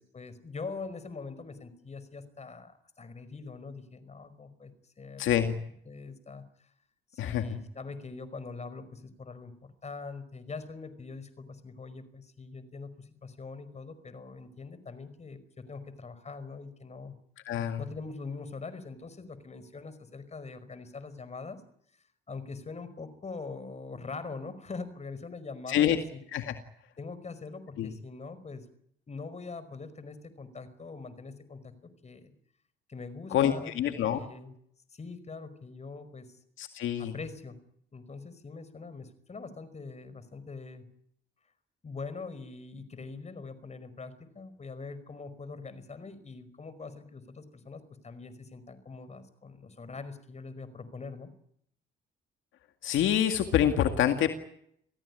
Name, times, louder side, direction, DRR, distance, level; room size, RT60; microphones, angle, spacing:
voice 1, 0.0-5.6 5.8-6.7 7.1-9.5 9.8-17.1 17.8-21.6 22.3-25.8 26.1-26.2 27.0-28.7 29.1-32.3 32.9-34.5 34.9-36.3 37.0-37.6 37.9-40.9 41.8-51.3, left 4 dB, 35° left, 14 dB, 5.0 m, -43 dB
voice 2, 5.2-5.5 7.2-7.4 17.5-17.8 25.7-26.0 26.3-26.5 27.8-27.9 33.3-34.2 36.6-37.1 52.8-54.3, left 10 dB, 80° left, 7 dB, 2.1 m, -26 dB
27.0 x 17.0 x 9.7 m, 0.71 s
cardioid pair, 90°, 20 cm